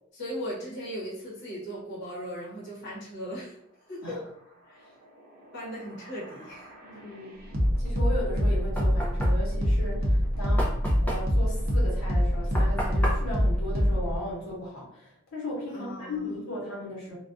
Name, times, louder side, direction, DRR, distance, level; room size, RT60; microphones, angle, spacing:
voice 1, 0.1-3.6 3.9-4.2 4.7-4.9 5.5-6.7 15.7-16.2, equal, 55° left, -7 dB, 0.9 m, -38 dB
sound 1, 5.5-14.2, equal, 45° right, 0.6 m, -26 dB
voice 2, 6.9-7.4 7.8-17.2, left 1 dB, 80° left, -5 dB, 0.9 m, -36 dB
Knock, 8.2-14.7, equal, 10° left, 0.4 m, -36 dB
2.3 x 2.2 x 2.5 m, 0.74 s
head